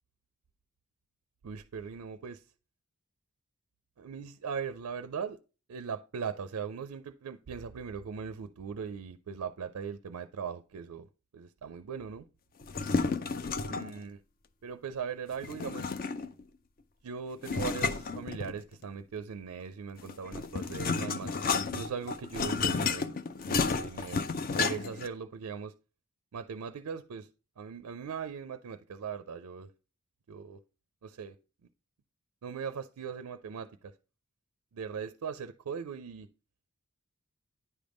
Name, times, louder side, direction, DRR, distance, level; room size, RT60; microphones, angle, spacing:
voice 1, 1.4-2.4 4.0-5.4 5.7-11.1 11.3-12.3 13.7-14.2 14.6-15.9 17.0-23.1 23.5-24.2 24.6-25.7 26.3-27.3 27.6-29.7 30.3-30.6 31.0-31.4 32.4-33.9 34.7-36.3, right 6 dB, 80° right, 0.4 m, -39 dB
sound 1, 12.6-14.0 15.4-16.4 17.4-18.8 20.0-25.1, left 4 dB, 40° left, 0.4 m, -32 dB
9.7 x 3.5 x 5.1 m
head